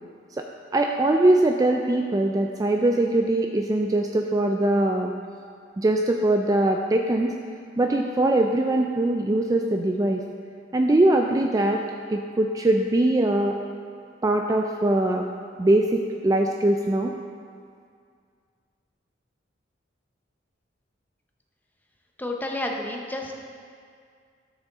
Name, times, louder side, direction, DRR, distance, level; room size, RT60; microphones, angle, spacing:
voice 1, 0.7-5.1 5.8-7.3 7.8-10.2 10.7-11.8 12.1-13.6 14.2-15.3 15.6-17.1, right 1 dB, 20° right, 2 dB, 0.3 m, -22 dB
voice 2, 22.2-23.3, left 1 dB, 10° left, 1 dB, 0.7 m, -30 dB
12.5 x 6.3 x 3.6 m, 2.2 s
head